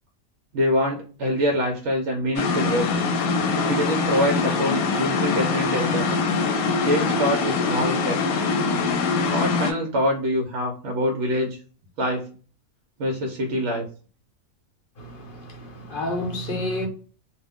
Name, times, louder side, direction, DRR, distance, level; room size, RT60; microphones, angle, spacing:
voice 1, 0.5-2.9 3.6-6.1 6.8-8.4 9.3-11.6 12.0-12.3 13.0-13.8, equal, 65° right, 0.8 m, -25 dB
sound 1, 2.4-9.7, left 4 dB, 80° left, 1.0 m, -23 dB
voice 2, 15.0-16.9, left 1 dB, 45° left, 0.8 m, -30 dB
2.5 x 2.1 x 3.4 m
omnidirectional pair, 1.5 m